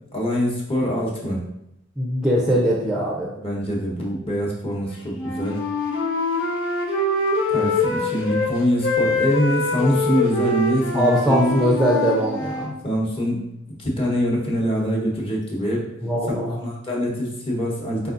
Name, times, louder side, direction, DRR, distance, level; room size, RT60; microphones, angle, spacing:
voice 1, 0.1-1.4 3.4-5.6 7.5-11.7 12.6-15.9 16.6-18.1, equal, 30° left, -3 dB, 1.0 m, -24 dB
voice 2, 2.0-3.3 10.9-12.7 16.0-16.6, equal, 5° right, -4 dB, 0.5 m, -21 dB
Wind instrument woodwind instrument, 5.1-8.5 8.8-12.7, left 2 dB, 85° left, 1.0 m, -24 dB
4.4 x 4.0 x 2.5 m, 0.84 s
head